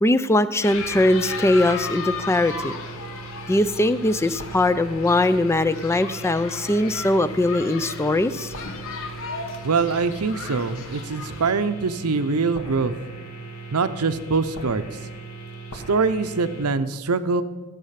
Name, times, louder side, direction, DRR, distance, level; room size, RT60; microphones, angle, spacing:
voice 1, 0.0-2.8 3.5-8.5, left 1 dB, 10° left, 14 dB, 0.4 m, -21 dB
sound 1, 0.6-11.5, left 4 dB, 65° left, 1.1 m, -35 dB
sound 2, 0.8-16.7, right 3 dB, 80° left, 1.8 m, -39 dB
voice 2, 9.6-12.9 13.7-14.9 15.7-17.4, right 4 dB, 80° right, 12 dB, 0.7 m, -23 dB
14.5 x 7.4 x 5.8 m, 1.3 s
head